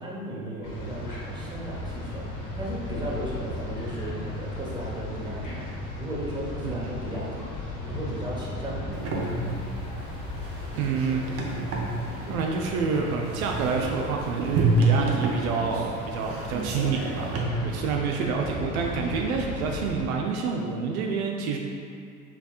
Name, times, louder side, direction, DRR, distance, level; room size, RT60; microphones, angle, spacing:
voice 1, 0.0-5.7 6.0-7.5 7.8-9.5, right 1 dB, 10° right, -5 dB, 1.0 m, -35 dB
sound 1, 0.6-20.0, left 2 dB, 45° left, 1.1 m, -36 dB
sound 2, 8.9-17.4, right 2 dB, 30° right, 0.8 m, -29 dB
voice 2, 10.7-11.4 12.3-21.6, right 5 dB, 70° right, 0 dB, 0.6 m, -28 dB
5.7 x 3.4 x 2.4 m, 2.3 s
hypercardioid pair, 75°, 44 cm